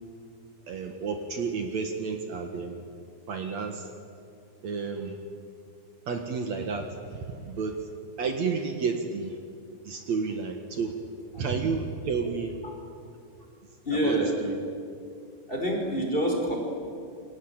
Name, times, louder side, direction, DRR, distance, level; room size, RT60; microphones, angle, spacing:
voice 1, 0.7-2.8 3.3-3.9 4.6-5.2 6.1-7.8 8.2-9.4 9.8-10.9 11.4-12.5 14.0-14.5, right 5 dB, 60° right, 5 dB, 2.8 m, -31 dB
voice 2, 13.8-14.4 15.5-16.6, equal, 15° left, 0 dB, 5.0 m, -26 dB
28.0 x 23.5 x 8.9 m, 2.4 s
omnidirectional pair, 3.7 m